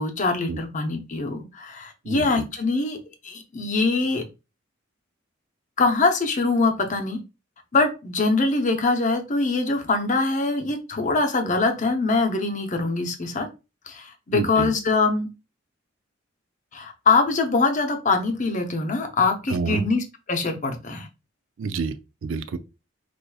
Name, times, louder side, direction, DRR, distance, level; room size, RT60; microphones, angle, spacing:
voice 1, 0.0-3.0 3.2-4.2 5.8-7.2 7.7-13.5 13.9-15.3 16.7-21.1, left 3 dB, 40° left, 0.7 m, -23 dB
voice 2, 2.0-2.4 14.3-14.7 19.5-19.8 21.6-22.6, right 5 dB, 70° right, 0.4 m, -28 dB
4.6 x 2.5 x 2.3 m
head